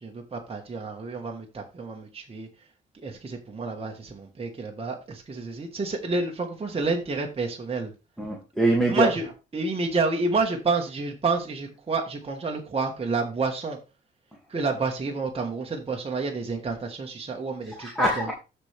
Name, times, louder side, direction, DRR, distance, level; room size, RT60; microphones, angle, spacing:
voice 1, 0.0-2.5 3.0-7.9 8.9-9.2 9.5-13.8 14.5-18.2, right 4 dB, 30° right, 2 dB, 1.4 m, -29 dB
voice 2, 8.2-9.1 17.6-18.3, right 1 dB, ahead, -2 dB, 2.2 m, -24 dB
13.0 x 4.5 x 3.4 m, 0.28 s
cardioid pair, 90°, 20 cm